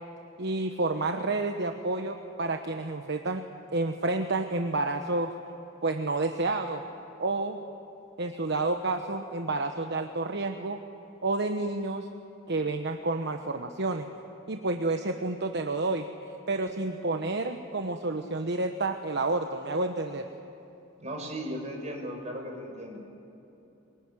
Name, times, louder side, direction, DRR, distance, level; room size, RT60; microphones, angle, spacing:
voice 1, 0.4-5.3 5.8-6.8 7.2-7.6 8.2-10.8 11.2-12.1 12.5-14.1 14.5-16.1 16.5-20.3, right 2 dB, 60° right, 5 dB, 1.1 m, -30 dB
voice 2, 21.0-23.0, equal, 35° right, 1 dB, 5.5 m, -36 dB
24.0 x 21.5 x 9.8 m, 3.0 s
head